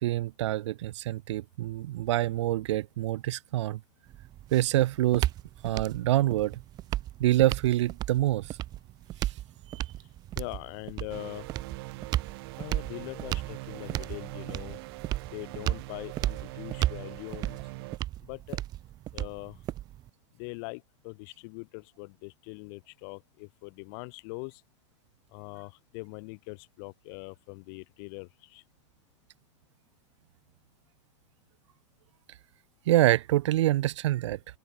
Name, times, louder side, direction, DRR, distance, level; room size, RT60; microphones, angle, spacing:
voice 1, 0.0-3.8 4.5-5.3 5.6-6.6 7.2-8.5 9.7-9.8 32.9-34.4, right 15 dB, 85° right, 0.5 m, -26 dB
sound 1, 4.1-20.1, right 14 dB, 25° right, 0.5 m, -35 dB
voice 2, 10.3-11.5 12.6-14.8 15.3-17.6 18.2-18.6 19.1-19.6 20.4-24.6 25.3-28.6, left 36 dB, 50° left, 6.6 m, -42 dB
sound 2, 11.1-18.0, right 23 dB, 60° right, 1.9 m, -43 dB
open air
supercardioid pair, 145°, 15 cm